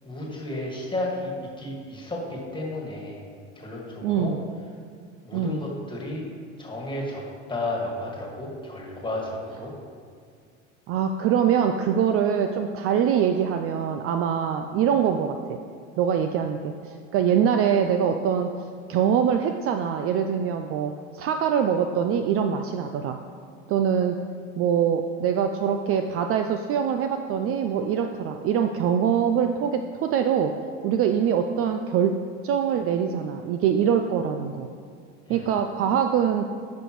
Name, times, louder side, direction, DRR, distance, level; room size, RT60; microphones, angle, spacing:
voice 1, 0.0-3.2 3.5-4.3 5.2-6.3 6.6-7.2 7.5-9.7 35.3-35.5, left 1 dB, 15° left, -2 dB, 1.8 m, -32 dB
voice 2, 4.0-4.4 5.3-5.6 10.9-15.6 16.0-18.5 18.9-23.2 23.7-24.2 24.6-30.6 30.8-32.2 32.4-34.7 35.3-36.5, right 8 dB, 40° right, 6 dB, 0.4 m, -24 dB
10.5 x 5.2 x 3.1 m, 2.1 s
hypercardioid pair, 90°, 36 cm